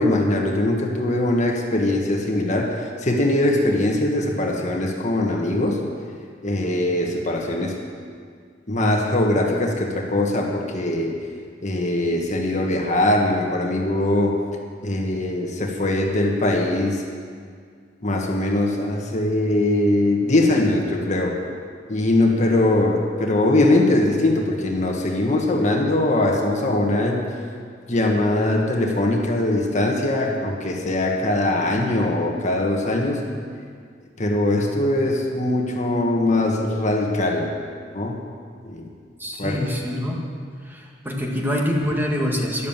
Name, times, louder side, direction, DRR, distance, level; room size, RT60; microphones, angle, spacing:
voice 1, 0.0-5.8 6.4-7.8 8.7-11.2 11.6-14.4 14.8-17.0 18.0-21.4 21.9-27.3 27.9-33.3 34.2-37.5 37.9-38.2 38.7-38.9 39.4-39.6, left 1 dB, 40° left, 1 dB, 1.6 m, -21 dB
voice 2, 39.2-40.2 40.7-42.7, equal, 10° right, -1 dB, 1.9 m, -25 dB
13.0 x 11.5 x 7.4 m, 2.1 s
head